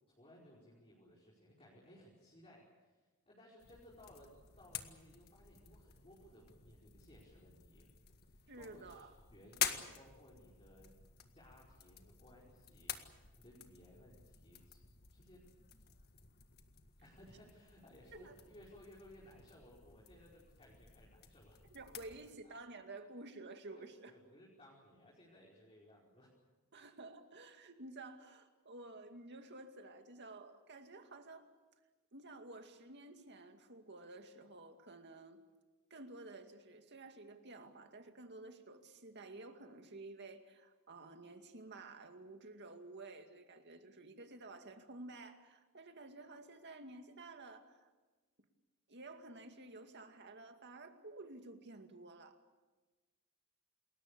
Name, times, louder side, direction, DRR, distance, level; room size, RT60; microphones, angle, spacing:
voice 1, 0.1-7.9 8.2-10.9 11.3-14.8 15.1-15.4 17.0-21.6 22.4-22.5 23.7-26.3, left 1 dB, 25° left, -5 dB, 5.1 m, -61 dB
sound 1, 3.6-22.4, left 9 dB, 45° left, 1.8 m, -49 dB
voice 2, 8.5-9.1 18.1-18.4 21.7-24.1 26.7-31.5 32.1-35.4 35.9-47.9 48.9-52.4, right 2 dB, 50° right, 6 dB, 2.3 m, -52 dB
28.5 x 21.5 x 6.9 m, 1.2 s
head